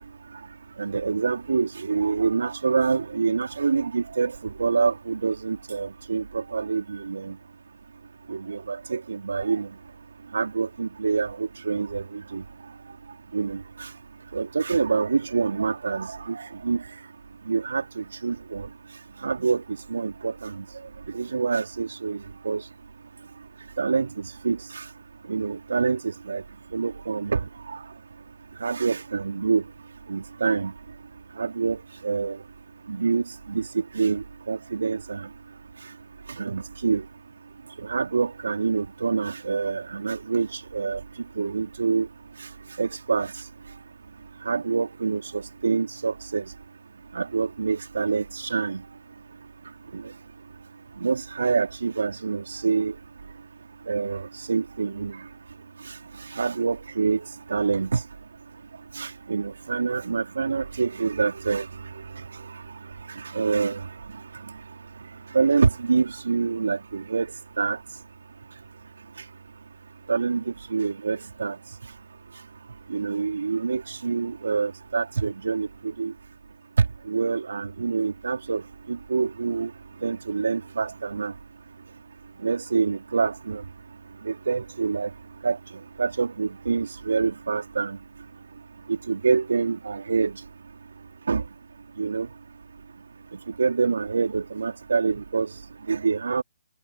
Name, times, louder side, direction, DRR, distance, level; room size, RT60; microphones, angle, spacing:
voice 1, 0.8-7.4 8.3-9.7 10.3-12.4 13.3-13.6 14.3-16.8 17.5-18.7 19.2-19.6 19.9-20.6 21.1-22.6 23.8-24.8 25.3-26.4 26.7-27.4 28.6-29.6 30.1-30.7 31.4-32.4 32.9-35.3 36.4-37.0 37.8-41.0 41.4-42.1 42.8-43.3 44.5-46.4 47.1-48.8 49.9-50.0 51.0-52.9 53.9-55.2 56.3-57.2 57.5-58.0 59.0-61.7 63.3-63.8 65.3-67.3 67.6-67.8 70.1-70.4 70.7-71.6 72.9-76.1 77.1-78.6 78.9-79.7 80.0-81.3 82.4-83.6 84.2-85.1 85.4-85.6 86.0-88.0 88.9-90.3 91.3-91.4 92.0-92.3 93.6-95.5 95.9-96.4, right 5 dB, 70° right, 3.8 m, -26 dB
figure-of-eight pair, 145°, 0 cm